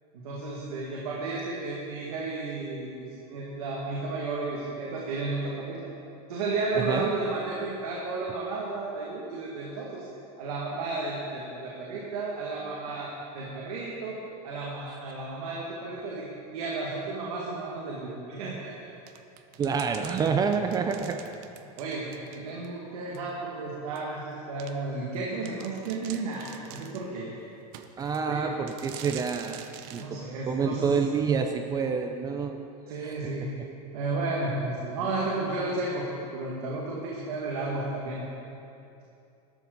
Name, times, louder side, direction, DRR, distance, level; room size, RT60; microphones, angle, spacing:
voice 1, 0.1-5.9 6.3-10.0 10.4-18.7 20.5-20.6 20.9-21.2 21.6-27.3 28.3-28.5 30.0-31.0 32.9-33.5 33.9-38.2, right 3 dB, 75° right, -4 dB, 2.1 m, -33 dB
voice 2, 6.7-7.1 14.9-15.0 19.6-21.2 28.0-30.2 30.5-32.7 33.0-33.5, right 5 dB, 20° right, 6 dB, 0.4 m, -28 dB
sound 1, 19.1-22.7 23.1-23.2 24.0-24.1 24.6-24.7 25.1-25.2 25.5-27.1 27.7-28.3 28.7-30.1, right 10 dB, 50° right, 0.8 m, -45 dB
13.5 x 12.0 x 4.0 m, 2.7 s
supercardioid pair, 145°, 19 cm